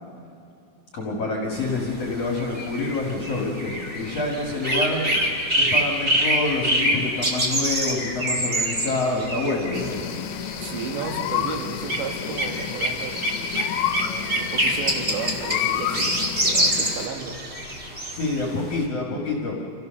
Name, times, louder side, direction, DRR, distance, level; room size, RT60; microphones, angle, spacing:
voice 1, 0.9-5.0 5.6-10.0 18.1-19.6, left 3 dB, 45° left, -2 dB, 2.5 m, -27 dB
sound 1, 1.6-18.8, right 1 dB, 25° right, 1.5 m, -26 dB
sound 2, 9.7-17.1, left 11 dB, 85° left, 2.9 m, -30 dB
voice 2, 10.6-13.4 14.0-17.4, right 6 dB, 85° right, 3 dB, 4.0 m, -34 dB
28.0 x 16.0 x 6.6 m, 2.6 s
omnidirectional pair, 5.0 m